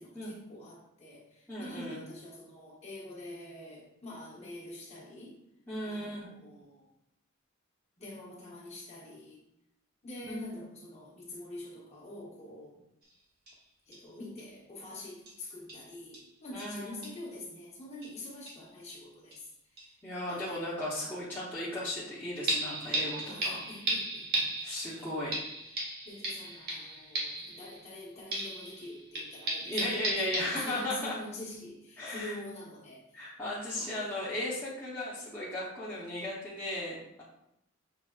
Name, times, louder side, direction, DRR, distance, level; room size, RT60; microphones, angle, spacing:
voice 1, 0.0-5.4 5.8-6.9 8.0-9.4 10.0-12.7 13.9-19.4 20.3-20.6 23.2-24.5 26.0-33.0 33.7-34.0, left 1 dB, 35° left, -4 dB, 1.2 m, -46 dB
voice 2, 1.5-2.0 5.7-6.3 10.3-10.4 16.5-17.0 20.0-23.6 24.6-25.5 26.5-27.0 29.6-31.2 32.0-32.4 33.1-37.2, left 1 dB, 10° left, -9 dB, 0.9 m, -36 dB
sound 1, 13.0-13.1 13.5-13.6 13.9-14.0 14.4-14.5 15.3-15.4 15.7-15.9 16.1-16.3 16.6-16.7 17.0-17.2 18.0-18.1 18.5-19.0 19.3-19.4 19.8-19.9 22.5-28.0 28.3-31.1 31.5-31.6, right 1 dB, 50° right, 1.2 m, -36 dB
5.8 x 3.4 x 2.3 m, 0.81 s
head